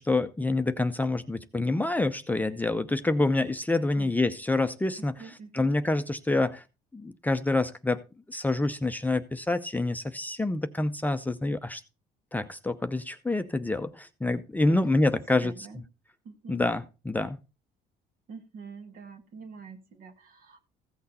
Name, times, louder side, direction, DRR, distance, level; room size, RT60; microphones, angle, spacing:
voice 1, 0.0-5.1 5.5-6.6 6.9-8.0 8.3-11.8 12.3-15.5 16.5-17.4, left 2 dB, 10° left, 8 dB, 0.6 m, -27 dB
voice 2, 5.0-5.8 14.7-15.1 15.4-15.8 16.2-16.6 18.3-20.6, right 5 dB, 55° right, 6 dB, 1.7 m, -46 dB
15.0 x 6.4 x 4.2 m, 0.30 s
cardioid pair, 110°, 17 cm